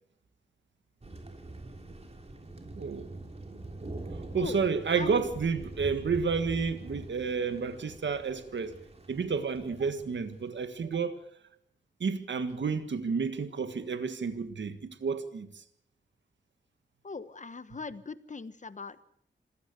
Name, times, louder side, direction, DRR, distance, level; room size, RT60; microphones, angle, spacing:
Thunder, 1.0-10.7, right 2 dB, 35° right, 3.1 m, -44 dB
voice 1, 2.7-3.1 4.3-8.7 9.1-11.2 12.0-15.6, right 5 dB, 70° right, 1.7 m, -31 dB
voice 2, 17.0-19.0, left 4 dB, 40° left, 1.3 m, -40 dB
27.0 x 16.0 x 6.8 m
wide cardioid pair, 100°, 19 cm